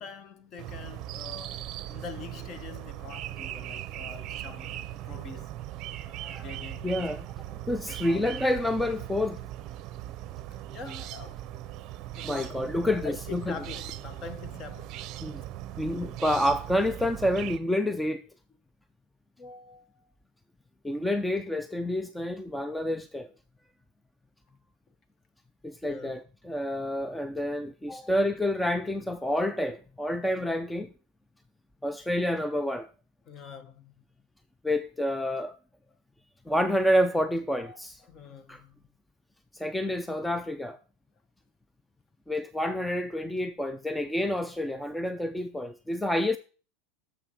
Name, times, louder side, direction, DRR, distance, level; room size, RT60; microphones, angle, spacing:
voice 1, 0.0-5.6 6.3-7.1 7.5-7.7 8.0-8.2 10.5-11.4 12.2-15.0 19.4-20.1 25.8-26.2 27.9-28.2 33.3-34.0 37.5-38.8, left 5 dB, 35° left, 1.1 m, -44 dB
sound 1, 0.6-17.6, right 13 dB, 45° right, 0.6 m, -39 dB
voice 2, 6.1-6.5 6.8-7.3 7.7-9.4 12.2-13.6 15.2-15.4 15.8-18.2 20.8-23.3 25.6-30.9 31.8-32.9 34.6-35.6 36.5-38.0 38.5-38.6 39.5-40.8 42.3-46.4, left 1 dB, 5° left, 0.5 m, -28 dB
7.0 x 5.7 x 5.5 m
supercardioid pair, 115°, 0 cm